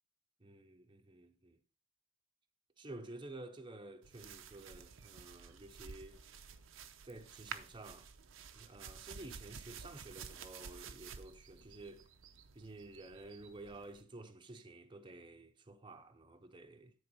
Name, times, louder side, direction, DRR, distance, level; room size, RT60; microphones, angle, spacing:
voice 1, 0.4-1.6 2.8-6.2 7.0-8.1 8.6-12.0 12.5-16.9, right 2 dB, 25° right, 0.7 m, -52 dB
sound 1, 4.0-14.0, right 6 dB, 75° right, 0.7 m, -52 dB
9.8 x 4.3 x 5.5 m
head